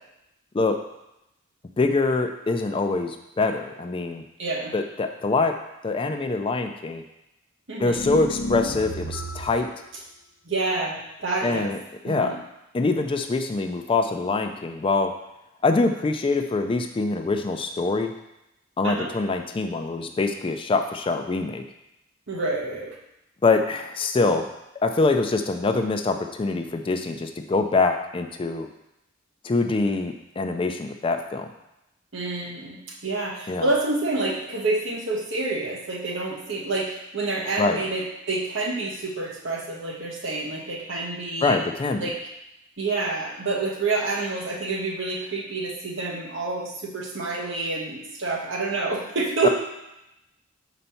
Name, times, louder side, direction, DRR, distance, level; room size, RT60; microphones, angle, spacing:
voice 1, 1.8-4.2 4.7-5.6 5.8-7.0 7.8-9.7 11.4-11.8 12.0-12.4 12.7-15.1 15.6-18.1 18.8-21.6 23.4-24.5 24.8-28.7 29.4-31.5 33.5-33.7 37.6-37.8 41.4-42.1 49.4-49.5, left 3 dB, 25° left, 6 dB, 0.3 m, -24 dB
voice 2, 4.4-4.7 7.7-8.0 10.5-11.7 12.0-12.4 18.8-19.1 22.3-23.0 32.1-41.6 42.0-42.2 42.8-49.5, right 3 dB, 65° right, -1 dB, 1.1 m, -28 dB
sound 1, 7.9-9.7, equal, 55° left, 0.7 m, -31 dB
4.3 x 4.1 x 5.6 m, 0.89 s
head